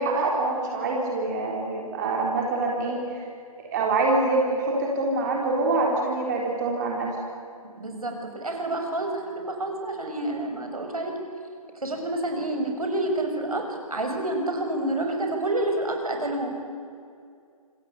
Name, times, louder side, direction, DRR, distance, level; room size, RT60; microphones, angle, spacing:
voice 1, 0.0-3.2 3.7-7.1, right 2 dB, 30° right, -1 dB, 3.9 m, -25 dB
voice 2, 7.8-11.1 11.8-16.5, right 1 dB, 70° right, 3 dB, 6.5 m, -28 dB
28.0 x 23.5 x 8.6 m, 2.3 s
figure-of-eight pair, 145°, 19 cm